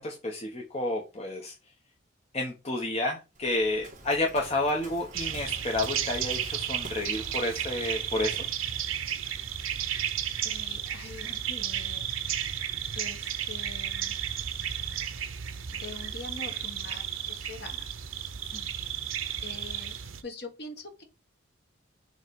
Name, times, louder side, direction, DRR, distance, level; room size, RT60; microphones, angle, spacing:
voice 1, 0.0-1.5 2.3-8.5 18.5-18.7, left 2 dB, 30° left, 0 dB, 0.9 m, -30 dB
Waves surf, 3.3-8.6, right 2 dB, 35° right, 1.7 m, -48 dB
sound 1, 5.1-20.2, right 9 dB, 80° right, 0.7 m, -33 dB
voice 2, 10.4-12.2 12.9-14.1 15.7-17.9 19.4-20.0 20.2-21.0, left 3 dB, 50° left, 5 dB, 1.3 m, -44 dB
6.7 x 3.2 x 4.6 m, 0.28 s
head